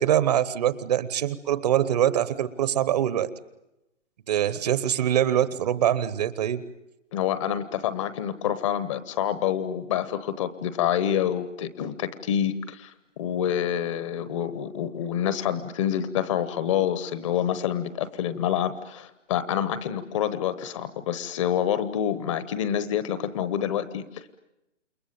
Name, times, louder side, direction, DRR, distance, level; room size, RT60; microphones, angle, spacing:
voice 1, 0.0-3.3 4.3-6.6, right 11 dB, 35° right, 16 dB, 1.0 m, -24 dB
voice 2, 7.1-24.4, left 10 dB, 25° left, 14 dB, 1.0 m, -27 dB
28.5 x 22.0 x 9.2 m, 0.89 s
hypercardioid pair, 150°, 37 cm